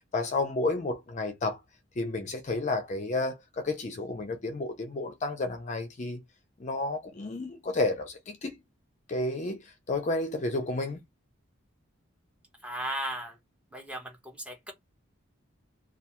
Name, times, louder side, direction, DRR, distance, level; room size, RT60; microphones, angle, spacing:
voice 1, 0.1-1.6 2.0-6.2 6.6-8.6 9.1-11.0, left 2 dB, 35° left, 0.4 m, -31 dB
voice 2, 12.6-13.4 13.7-14.7, right 1 dB, 5° right, 0.6 m, -36 dB
2.3 x 2.2 x 2.8 m
head